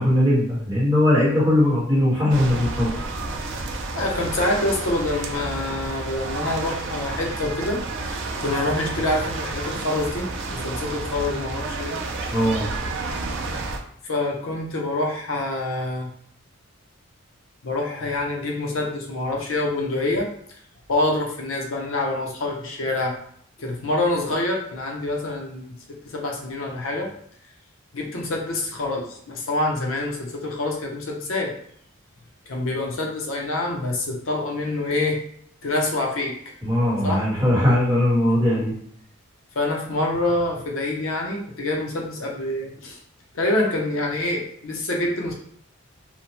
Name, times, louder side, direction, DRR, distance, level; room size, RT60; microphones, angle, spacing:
voice 1, 0.0-2.9 12.3-12.6 36.6-38.7, left 1 dB, 15° right, -6 dB, 0.9 m, -19 dB
sound 1, 2.3-13.8, right 3 dB, 60° right, 0.4 m, -30 dB
voice 2, 4.0-7.8 8.4-12.0 14.0-16.1 17.6-20.3 20.9-23.2 23.6-27.1 27.9-31.5 32.5-35.2 35.6-36.3 37.0-37.3 39.6-43.0 43.3-45.3, left 2 dB, 70° left, 0 dB, 0.6 m, -26 dB
2.8 x 2.0 x 2.9 m, 0.64 s
head